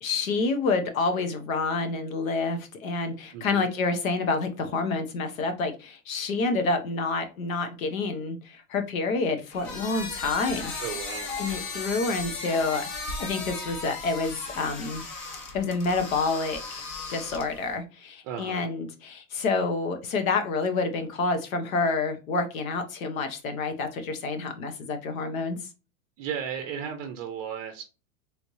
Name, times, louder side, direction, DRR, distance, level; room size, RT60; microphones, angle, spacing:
voice 1, 0.0-10.7 11.4-12.9 13.2-15.0 15.5-16.8 17.1-25.6, left 3 dB, 90° left, 1.1 m, -28 dB
voice 2, 3.3-3.6 10.8-11.3 18.2-18.7 26.2-27.8, right 8 dB, 35° right, 0.5 m, -35 dB
door creak, 9.5-17.7, left 3 dB, 45° left, 1.1 m, -36 dB
3.4 x 3.1 x 2.7 m
supercardioid pair, 155°, 40 cm